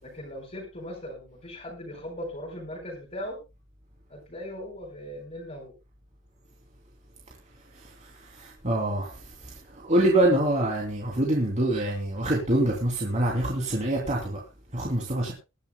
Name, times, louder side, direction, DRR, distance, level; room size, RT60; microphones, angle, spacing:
voice 1, 0.0-3.4 4.1-5.7, equal, 35° left, 4.5 m, -39 dB
voice 2, 8.4-9.1 9.4-14.4 14.7-15.3, right 1 dB, 35° right, 3.0 m, -25 dB
23.0 x 11.0 x 2.2 m
head